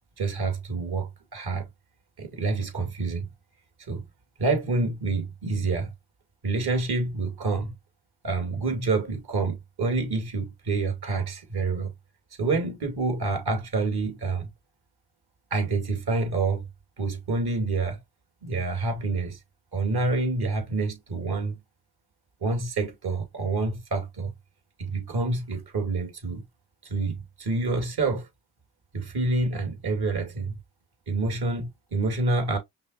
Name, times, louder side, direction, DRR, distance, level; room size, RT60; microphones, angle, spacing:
voice 1, 0.2-1.7 2.2-3.3 3.9-4.0 4.4-5.9 6.4-7.7 8.2-11.9 12.4-14.5 15.5-16.7 17.0-18.0 18.4-19.4 19.7-21.6 22.4-24.3 24.8-26.4 26.8-28.3 28.9-30.6 31.1-32.6, right 3 dB, 55° right, 2.5 m, -27 dB
5.4 x 3.0 x 2.5 m
supercardioid pair, 45°, 46 cm